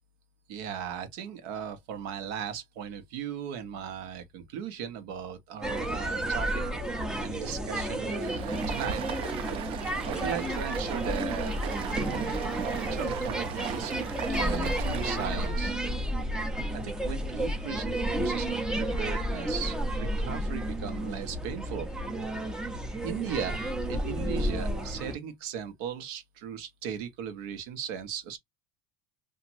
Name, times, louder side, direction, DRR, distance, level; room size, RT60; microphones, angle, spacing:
voice 1, 0.5-6.6 7.2-9.5 10.0-15.7 16.7-21.9 23.0-23.6 23.9-28.4, right 8 dB, 75° right, 1.1 m, -38 dB
sound 1, 5.6-25.2, right 1 dB, 5° right, 0.6 m, -31 dB
Stream, 8.1-15.6, right 8 dB, 45° right, 0.6 m, -37 dB
3.0 x 2.5 x 2.5 m
supercardioid pair, 145°, 13 cm